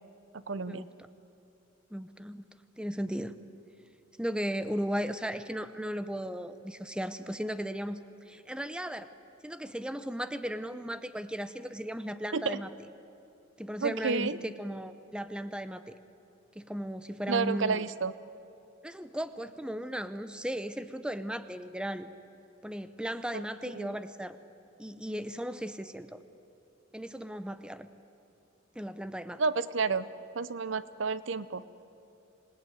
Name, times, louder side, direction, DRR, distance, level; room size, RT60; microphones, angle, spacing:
voice 1, 0.3-0.8 12.3-12.6 13.8-14.4 17.3-18.1 23.3-23.4 23.7-23.9 29.4-30.1 30.3-31.6, right 4 dB, 65° right, 16 dB, 0.7 m, -30 dB
voice 2, 1.9-2.5 2.8-3.4 4.2-8.0 8.3-9.1 9.4-12.7 13.6-15.9 16.5-17.8 18.8-22.1 22.6-24.4 24.8-26.2 26.9-27.9 28.7-29.4, equal, 5° right, 12 dB, 0.7 m, -36 dB
26.5 x 19.0 x 9.3 m, 2.9 s
head